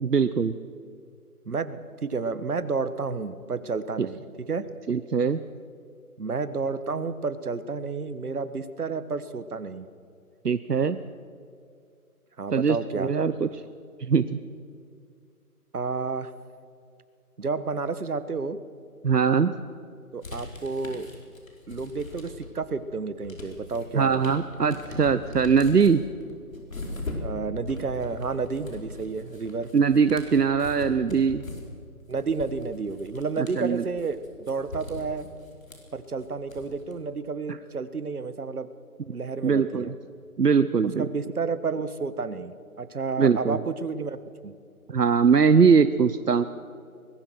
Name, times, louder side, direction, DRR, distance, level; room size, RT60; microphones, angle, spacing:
voice 1, 0.0-0.5 4.9-5.4 10.4-11.0 12.5-13.5 14.0-14.4 19.0-19.5 23.9-26.0 29.7-31.4 33.4-33.8 39.4-39.9 40.4-41.1 43.2-43.6 44.9-46.4, right 6 dB, 90° right, 12 dB, 0.9 m, -21 dB
voice 2, 1.4-4.6 6.2-9.9 12.4-13.1 15.7-16.3 17.4-18.6 20.1-21.1 21.7-24.3 27.2-29.7 32.1-35.3 35.9-38.7 39.1-39.9 41.0-42.5 42.8-44.2 44.4-44.5, right 4 dB, 70° right, 13 dB, 1.5 m, -31 dB
sound 1, 20.2-22.6 23.0-36.9, left 2 dB, 60° left, 4.9 m, -40 dB
23.5 x 20.5 x 6.4 m, 2.3 s
figure-of-eight pair, 160°, 46 cm